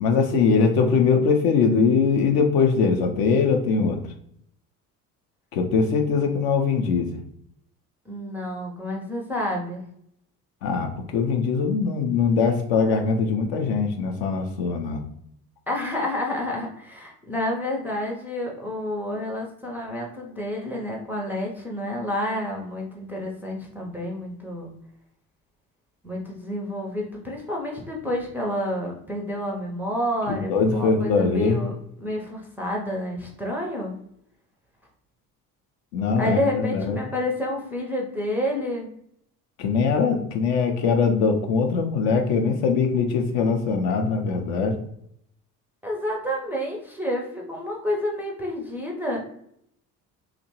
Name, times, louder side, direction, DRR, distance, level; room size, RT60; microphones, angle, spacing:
voice 1, 0.0-4.0 5.5-7.2 10.6-15.0 30.3-31.6 35.9-37.0 39.6-44.8, left 5 dB, 50° left, 4 dB, 0.5 m, -22 dB
voice 2, 8.1-9.8 15.7-24.7 26.0-31.7 32.0-33.9 36.2-38.9 45.8-49.2, left 1 dB, 5° right, -3 dB, 0.4 m, -29 dB
2.8 x 2.1 x 2.8 m, 0.71 s
figure-of-eight pair, 50°, 47 cm